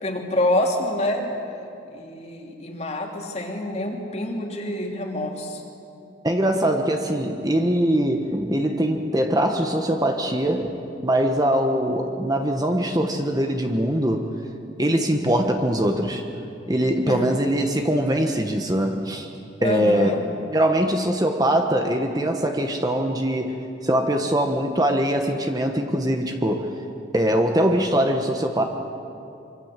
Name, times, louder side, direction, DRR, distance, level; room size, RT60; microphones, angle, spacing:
voice 1, 0.0-1.4 1.9-5.6 17.1-17.2 19.6-20.2, left 1 dB, 35° left, 1 dB, 3.0 m, -26 dB
voice 2, 6.2-10.7 11.0-14.3 14.8-16.2 16.7-19.3 19.6-20.1 20.5-23.6 23.8-26.7 27.1-28.6, right 1 dB, 20° right, 4 dB, 1.4 m, -22 dB
25.0 x 25.0 x 7.6 m, 2.7 s
head